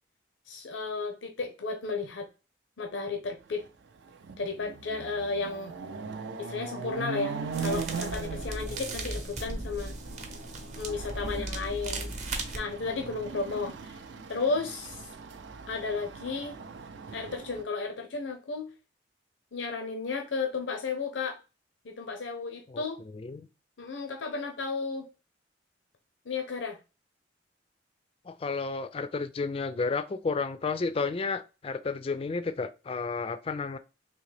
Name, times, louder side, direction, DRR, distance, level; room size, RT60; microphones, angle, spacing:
voice 1, 0.5-2.3 2.8-3.7 4.4-5.7 6.4-9.9 10.8-12.1 12.5-14.0 14.3-15.1 15.7-16.6 17.1-18.7 19.5-21.4 21.8-23.0 23.8-25.1 26.3-26.8, left 4 dB, 90° left, 0.6 m, -33 dB
Chatter / Car passing by / Motorcycle, 3.6-3.7 4.1-17.6, right 4 dB, 75° right, 0.4 m, -40 dB
sound 1, 7.5-12.6, right 2 dB, 40° right, 0.7 m, -37 dB
voice 2, 23.1-23.5 28.2-33.8, left 4 dB, 30° left, 0.3 m, -32 dB
3.8 x 2.9 x 3.2 m
head